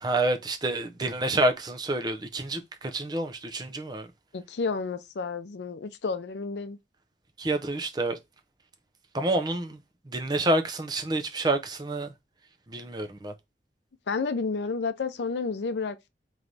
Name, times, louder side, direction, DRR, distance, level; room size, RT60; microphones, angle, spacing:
voice 1, 0.0-4.1 7.4-8.2 9.1-9.8 10.1-12.1 12.7-13.3, right 2 dB, 25° right, 0.5 m, -28 dB
voice 2, 4.3-6.8 14.1-16.1, left 4 dB, 80° left, 0.5 m, -31 dB
3.3 x 3.1 x 3.9 m
head